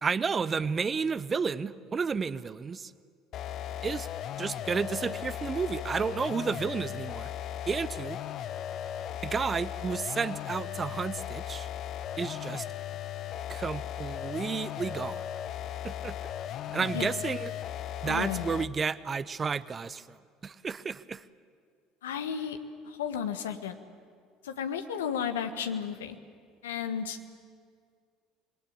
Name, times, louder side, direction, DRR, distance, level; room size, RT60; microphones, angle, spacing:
voice 1, 0.0-2.9 3.8-4.1 4.4-7.3 7.7-8.2 9.2-11.7 12.2-12.7 13.5-15.2 15.8-16.2 16.7-17.5 18.0-20.2 20.4-21.2, right 5 dB, 30° right, 16 dB, 0.8 m, -31 dB
sound 1, 3.3-18.8, left 10 dB, 55° left, 0.7 m, -37 dB
voice 2, 18.0-18.4 22.0-22.6 22.8-23.8 24.4-26.2 26.6-27.2, left 8 dB, 80° left, 8 dB, 1.4 m, -33 dB
26.5 x 20.5 x 8.7 m, 2.1 s
hypercardioid pair, 65°, 0 cm